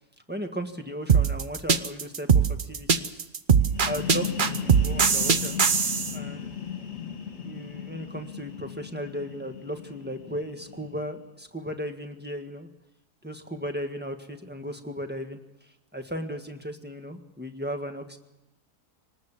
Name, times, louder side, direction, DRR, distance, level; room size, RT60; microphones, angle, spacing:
voice 1, 0.3-3.3 3.8-5.6 6.1-6.6 7.4-12.7 13.2-15.4 15.9-18.2, equal, 5° right, 5 dB, 1.6 m, -36 dB
sound 1, 1.1-6.1, right 6 dB, 40° right, 0.9 m, -21 dB
sound 2, 3.6-11.2, left 8 dB, 45° left, 2.0 m, -36 dB
25.0 x 19.5 x 7.4 m, 0.96 s
omnidirectional pair, 1.7 m